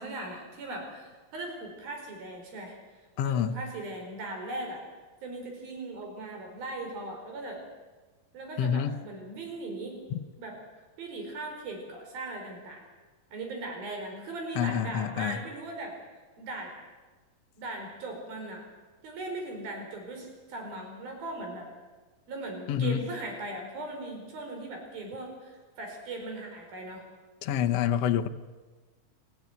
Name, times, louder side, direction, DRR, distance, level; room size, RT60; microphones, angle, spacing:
voice 1, 0.0-2.8 3.2-4.8 5.2-7.6 8.3-10.0 10.4-10.6 11.0-12.8 13.3-16.0 16.4-16.7 17.6-18.7 19.0-21.7 22.3-27.1, right 2 dB, 85° right, 2 dB, 6.7 m, -39 dB
voice 2, 3.2-3.6 8.6-8.9 10.1-10.2 14.5-15.4 22.7-23.0 27.4-28.3, left 9 dB, 70° left, 5 dB, 1.6 m, -27 dB
27.0 x 15.5 x 9.5 m, 1.3 s
omnidirectional pair, 4.1 m